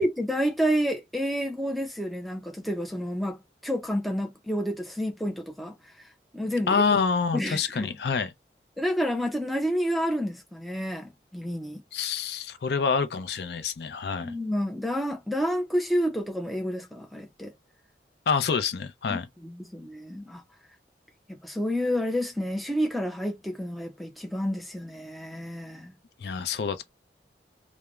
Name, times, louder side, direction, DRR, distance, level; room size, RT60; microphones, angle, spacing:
voice 1, 0.0-5.8 6.3-6.8 7.3-7.9 8.8-11.8 14.2-17.5 19.1-20.4 21.3-25.9, equal, ahead, 0.4 m, -29 dB
voice 2, 6.7-8.3 11.9-14.3 18.3-19.3 26.2-26.8, left 5 dB, 70° left, 0.4 m, -27 dB
3.0 x 2.0 x 2.3 m
head